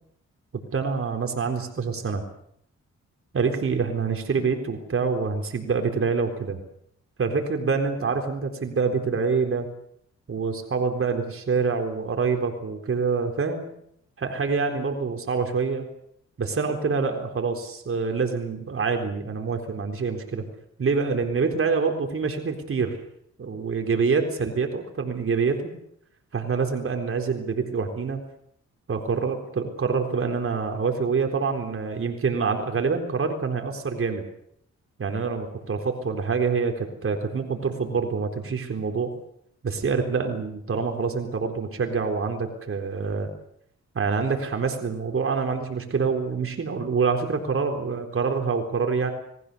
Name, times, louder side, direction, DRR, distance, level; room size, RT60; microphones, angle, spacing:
voice 1, 0.7-2.2 3.3-6.6 7.2-9.7 10.3-13.7 14.2-15.9 16.4-20.4 20.8-23.0 23.4-25.6 26.3-28.2 28.9-34.3 35.0-39.1 39.6-43.3 43.9-49.1, right 5 dB, 45° right, 3 dB, 4.0 m, -26 dB
29.0 x 20.0 x 6.9 m, 0.71 s
cardioid pair, 75°, 29 cm